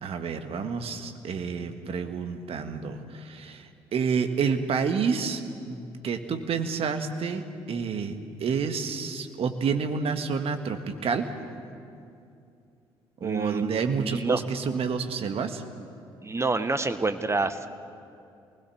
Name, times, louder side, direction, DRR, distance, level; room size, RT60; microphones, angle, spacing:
voice 1, 0.0-5.4 5.7-8.1 8.4-11.3 13.2-15.6, right 5 dB, 55° right, 7 dB, 1.9 m, -29 dB
voice 2, 13.2-14.4 16.2-17.7, right 3 dB, 20° right, 10 dB, 1.4 m, -28 dB
27.0 x 20.0 x 7.2 m, 2.6 s
hypercardioid pair, 45°, 12 cm